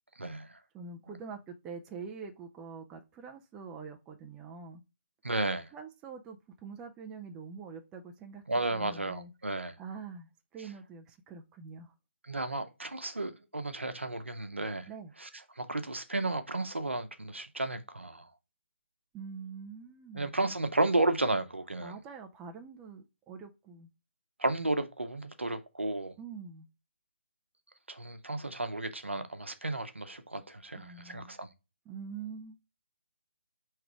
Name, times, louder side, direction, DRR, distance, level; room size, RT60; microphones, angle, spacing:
voice 1, 0.2-0.6 5.2-5.7 8.5-9.8 12.3-14.9 15.2-15.3 15.6-18.3 20.1-21.9 24.4-26.2 27.9-31.5, right 2 dB, 80° right, 0.7 m, -33 dB
voice 2, 0.7-4.8 5.7-8.4 8.7-9.3 9.8-11.9 14.9-15.1 19.1-20.3 21.8-23.9 26.2-26.7 30.8-31.4 31.9-32.6, right 5 dB, 10° right, 0.3 m, -45 dB
4.8 x 3.2 x 3.5 m
figure-of-eight pair, 145°, 6 cm